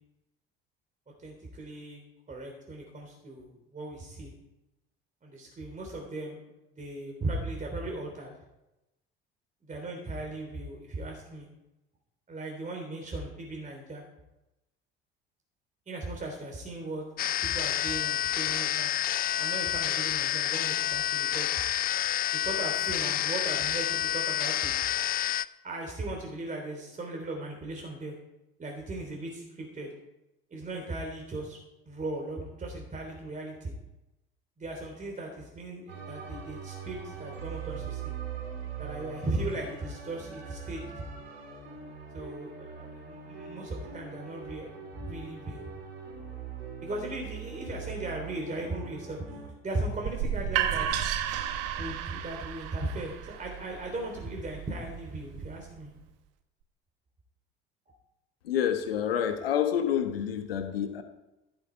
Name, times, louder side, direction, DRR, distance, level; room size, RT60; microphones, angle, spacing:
voice 1, 1.2-2.0 2.3-4.3 5.2-6.4 6.8-8.3 9.6-11.5 12.3-14.0 15.9-18.9 19.4-21.6 22.3-24.7 25.6-28.1 28.6-29.9 30.5-31.6 31.9-33.7 34.6-38.1 38.8-41.0 42.1-45.6 46.8-49.4 49.6-51.0 51.8-55.9, right 2 dB, 25° right, 0 dB, 3.3 m, -37 dB
sound 1, 17.2-25.5, left 11 dB, 30° left, 0.4 m, -29 dB
sound 2, 35.9-49.5, right 6 dB, 80° right, 2.3 m, -42 dB
sound 3, 50.0-55.8, right 9 dB, 55° right, 1.2 m, -33 dB
voice 2, 58.4-61.0, left 9 dB, 75° left, 7 dB, 1.3 m, -28 dB
14.5 x 10.5 x 4.5 m, 0.94 s
figure-of-eight pair, 55°, 30 cm